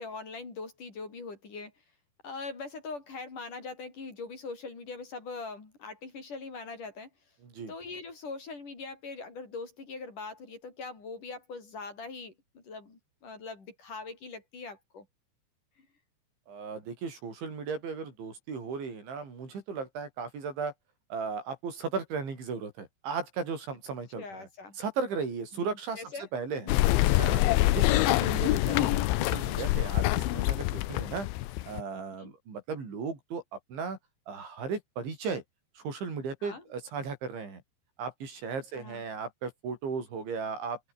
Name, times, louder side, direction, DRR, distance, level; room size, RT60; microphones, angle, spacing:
voice 1, 0.0-1.7 2.2-7.1 7.7-15.1 24.2-24.8 25.5-26.3 26.6-26.9 32.2-32.3 36.4-36.6 38.8-39.0, left 4 dB, 45° left, 7.0 m, -42 dB
voice 2, 7.4-7.7 16.5-20.7 21.1-24.5 24.8-26.0 26.3-26.7 27.2-27.5 27.7-31.3 31.7-33.4 33.7-34.0 34.3-35.4 35.8-37.6 38.0-40.8, right 5 dB, 80° right, 9.2 m, -36 dB
sound 1, 26.7-31.8, left 17 dB, 85° left, 3.4 m, -25 dB
open air
omnidirectional pair, 5.2 m